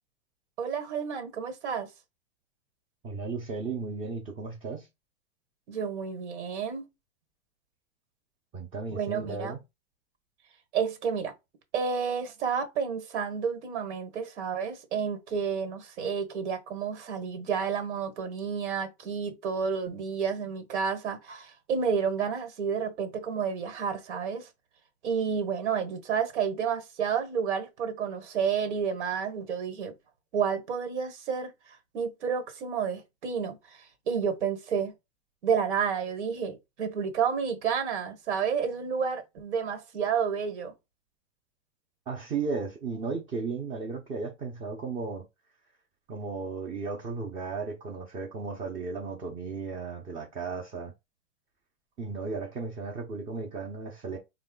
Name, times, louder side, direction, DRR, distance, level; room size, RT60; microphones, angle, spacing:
voice 1, 0.6-1.9 5.7-6.8 8.9-9.5 10.7-11.3 11.7-24.5 25.0-29.9 30.3-34.9 35.4-40.7, right 6 dB, 90° right, 1.3 m, -30 dB
voice 2, 3.0-4.9 8.5-9.6 42.1-45.3 46.1-50.9 52.0-54.2, right 4 dB, 15° right, 0.5 m, -35 dB
4.0 x 2.2 x 3.7 m
supercardioid pair, 155°, 34 cm